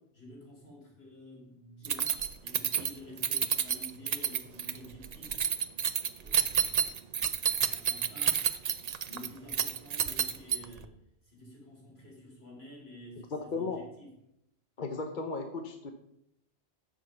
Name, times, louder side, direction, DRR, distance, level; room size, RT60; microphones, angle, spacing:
voice 1, 0.1-2.1 2.4-5.4 6.2-6.9 7.5-8.4 9.1-10.9 11.2-14.1, left 1 dB, 70° left, -3 dB, 4.1 m, -50 dB
Keys jangling, 1.8-10.9, right 8 dB, 45° right, 0.6 m, -30 dB
voice 2, 13.3-13.8 14.8-15.9, left 3 dB, 50° left, 6 dB, 1.0 m, -35 dB
10.0 x 7.6 x 5.6 m, 0.79 s
omnidirectional pair, 1.1 m